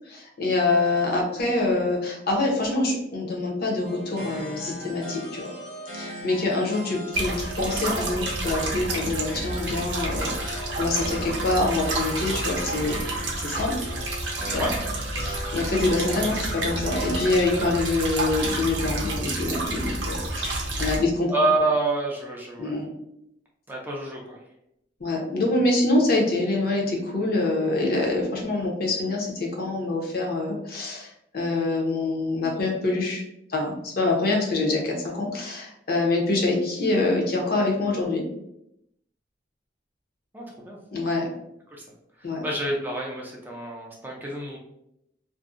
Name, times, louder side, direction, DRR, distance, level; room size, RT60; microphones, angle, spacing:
voice 1, 0.1-5.5 5.9-13.0 13.4-13.7 14.5-14.7 15.2-21.3 22.6-22.9 25.0-33.2 33.5-38.2 40.9-41.3 42.2-42.4, left 2 dB, 55° left, -1 dB, 0.6 m, -25 dB
sound 1, 3.8-17.7, equal, 80° left, 1.0 m, -38 dB
sound 2, 7.1-21.0, right 2 dB, 70° right, 0.5 m, -30 dB
voice 2, 21.3-22.8 23.7-24.4 40.3-40.8 41.7-41.8 42.2-44.6, right 2 dB, 10° right, -2 dB, 0.3 m, -28 dB
2.5 x 2.0 x 2.4 m, 0.80 s
head